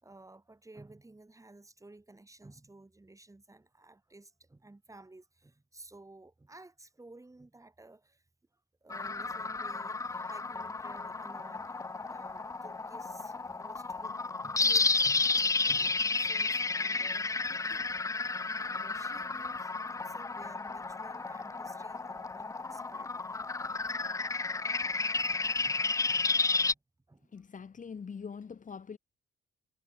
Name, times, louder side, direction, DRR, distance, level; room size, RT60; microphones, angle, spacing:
voice 1, 0.0-8.2 8.8-11.7 12.0-17.9 18.5-23.2 24.3-24.4 25.6-26.8 27.1-27.4, right 2 dB, 15° right, 6.4 m, -54 dB
sound 1, 8.9-26.7, left 3 dB, 15° left, 0.5 m, -32 dB
voice 2, 27.3-29.0, left 6 dB, 40° left, 3.2 m, -43 dB
cardioid pair, 90°, 20 cm